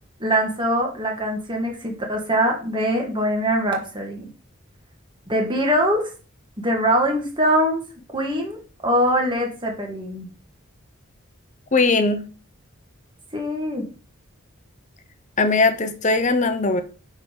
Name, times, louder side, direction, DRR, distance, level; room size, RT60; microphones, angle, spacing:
voice 1, 0.2-4.3 5.3-6.1 6.6-7.8 8.1-10.3 13.3-13.9, equal, 25° right, 1.7 m, -23 dB
voice 2, 11.7-12.2 15.4-16.8, left 3 dB, 35° left, 0.7 m, -19 dB
5.9 x 4.5 x 5.2 m
head